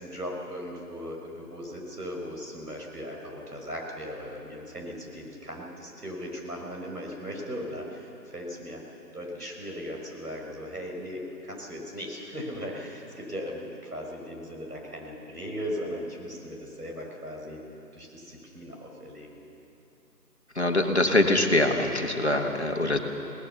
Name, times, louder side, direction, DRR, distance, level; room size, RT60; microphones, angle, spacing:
voice 1, 0.0-8.8 9.1-17.6 17.9-19.4, equal, 65° right, 0 dB, 5.7 m, -38 dB
voice 2, 20.6-23.0, left 1 dB, 40° left, 3 dB, 1.7 m, -23 dB
21.5 x 18.5 x 7.0 m, 2.9 s
figure-of-eight pair, 170°, 49 cm